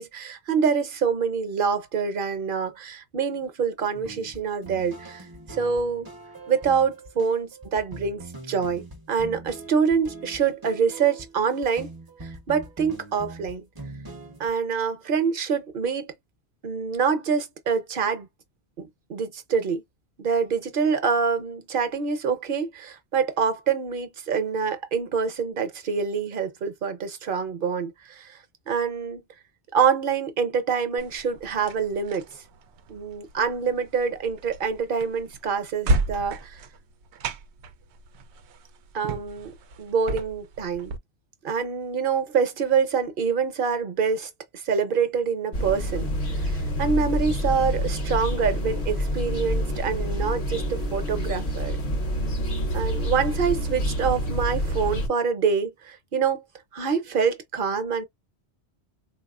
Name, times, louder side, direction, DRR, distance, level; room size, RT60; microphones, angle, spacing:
voice 1, 0.0-6.1 6.5-11.9 12.2-13.6 14.4-16.1 16.6-18.3 18.8-19.8 20.2-28.4 28.7-29.2 29.7-32.4 32.9-36.6 38.9-39.5 39.8-40.9 41.4-51.8 52.7-56.4 56.7-58.1, right 6 dB, 55° right, 0.9 m, -26 dB
sound 1, 3.9-14.5, right 2 dB, 25° right, 0.6 m, -42 dB
sound 2, 31.0-41.0, right 2 dB, 85° right, 0.9 m, -33 dB
sound 3, 45.5-55.1, equal, 40° left, 0.7 m, -27 dB
3.9 x 2.4 x 2.3 m
omnidirectional pair, 1.1 m